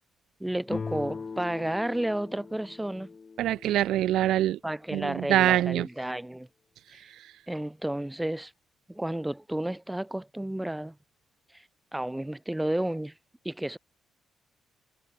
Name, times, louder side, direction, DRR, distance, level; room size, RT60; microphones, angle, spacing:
voice 1, 0.4-3.1 4.6-6.5 6.9-7.0 7.5-8.5 8.9-10.9 11.5-11.6 11.9-13.1 13.4-13.8, right 1 dB, 5° right, 1.4 m, -32 dB
sound 1, 0.7-4.3, left 5 dB, 35° left, 1.1 m, -40 dB
voice 2, 3.4-4.6 4.9-5.9 7.1-7.3, right 13 dB, 80° right, 0.5 m, -25 dB
cardioid pair, 90°, 0 cm